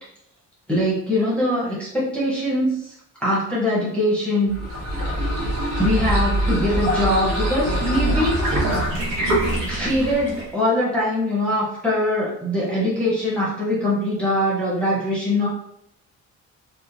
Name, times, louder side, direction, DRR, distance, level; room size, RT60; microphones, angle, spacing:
voice 1, 0.7-2.9 3.2-4.5 5.8-8.6 9.7-15.5, left 1 dB, 5° left, -8 dB, 0.6 m, -22 dB
sound 1, 4.5-10.5, right 1 dB, 90° right, 1.1 m, -23 dB
2.9 x 2.2 x 2.5 m, 0.77 s
cardioid pair, 175°, 30 cm